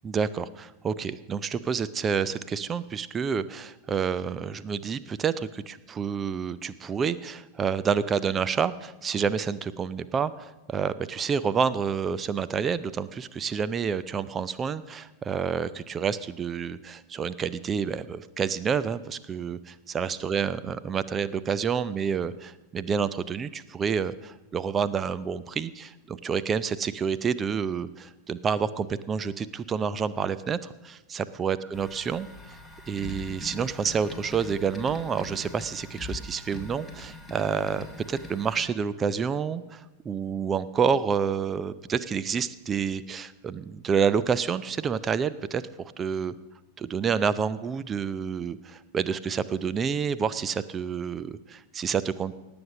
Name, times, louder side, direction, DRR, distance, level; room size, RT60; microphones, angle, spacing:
voice 1, 0.0-32.3 32.9-46.3 46.8-52.3, right 6 dB, 20° right, 15 dB, 0.6 m, -29 dB
sound 1, 31.7-38.6, left 2 dB, ahead, 2.1 m, -42 dB
18.5 x 7.0 x 6.3 m, 1.1 s
figure-of-eight pair, 90°, 0 cm